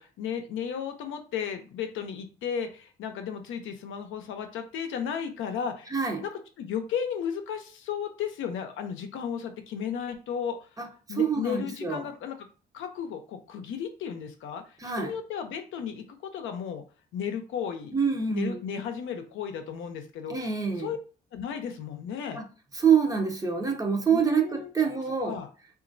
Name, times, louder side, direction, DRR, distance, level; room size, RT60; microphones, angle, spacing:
voice 1, 0.0-5.9 6.2-6.3 6.6-10.6 11.1-12.5 12.7-16.8 17.1-17.9 18.3-20.3 20.8-21.0 21.3-22.4 24.1-24.7 25.2-25.5, left 7 dB, 80° left, 0.6 m, -34 dB
voice 2, 5.9-6.2 10.8-10.9 11.2-12.1 14.8-15.2 17.9-18.6 20.3-20.9 22.3-22.5 22.7-25.4, right 6 dB, 15° right, 0.6 m, -26 dB
2.9 x 2.5 x 2.6 m
cardioid pair, 90°, 20 cm